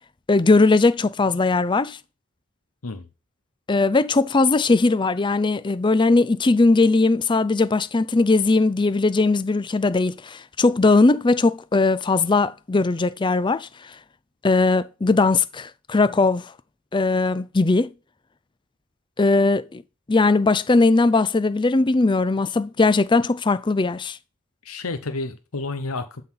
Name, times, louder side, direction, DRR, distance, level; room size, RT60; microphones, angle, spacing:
voice 1, 0.3-2.0 3.7-13.7 14.4-16.5 16.9-17.9 19.2-19.8 20.1-24.2, left 3 dB, 20° left, 0.4 m, -19 dB
voice 2, 24.6-26.2, left 3 dB, 90° left, 0.9 m, -30 dB
12.0 x 4.1 x 5.5 m
head